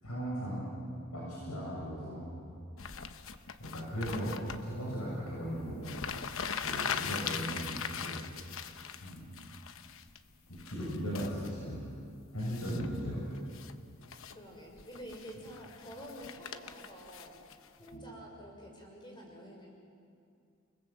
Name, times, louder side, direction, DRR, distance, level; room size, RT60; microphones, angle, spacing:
voice 1, 0.0-0.7 1.1-2.3 3.6-6.0 6.6-8.2 9.0-9.3 10.5-11.9 12.3-13.2 17.9-18.0, equal, 85° left, -6 dB, 7.4 m, -37 dB
sound 1, 2.8-4.6 5.5-5.6 5.8-10.2 10.6-11.5 12.4-13.0 13.3-13.7 14.0-14.4 14.8-17.9, left 7 dB, 65° left, 1.0 m, -40 dB
voice 2, 14.3-17.4 17.8-19.7, equal, 20° left, -1 dB, 6.1 m, -48 dB
29.5 x 20.5 x 7.7 m, 2.3 s
head